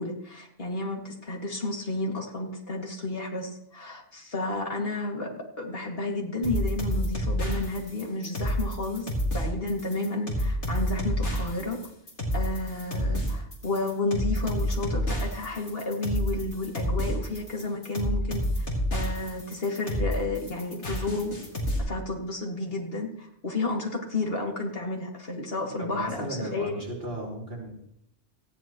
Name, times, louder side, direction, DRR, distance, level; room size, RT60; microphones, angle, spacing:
voice 1, 0.0-9.1 9.3-11.8 12.3-18.7 18.9-21.3 21.8-26.9, left 2 dB, 55° left, 0 dB, 2.6 m, -31 dB
sound 1, 6.4-21.8, equal, 80° left, 4.2 m, -29 dB
voice 2, 25.8-27.7, right 1 dB, 55° right, -5 dB, 4.6 m, -35 dB
18.5 x 15.0 x 3.1 m, 0.72 s
omnidirectional pair, 1.2 m